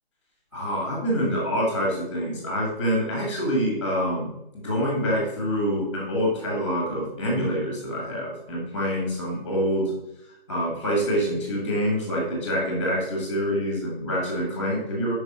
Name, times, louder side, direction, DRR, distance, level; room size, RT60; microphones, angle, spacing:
voice 1, 0.5-15.1, equal, 10° left, -2 dB, 1.3 m, -26 dB
5.4 x 5.0 x 4.8 m, 0.83 s
hypercardioid pair, 175°, 31 cm